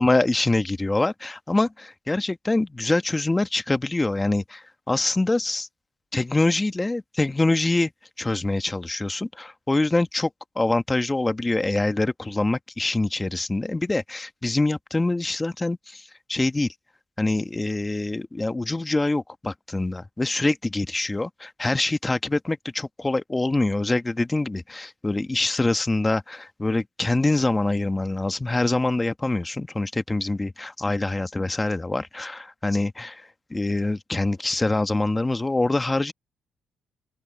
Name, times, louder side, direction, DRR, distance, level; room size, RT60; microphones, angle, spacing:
voice 1, 0.0-5.7 6.1-7.9 8.2-10.3 10.5-16.7 17.2-36.1, left 2 dB, 15° left, 1.3 m, -25 dB
cardioid pair, 90°, 0 cm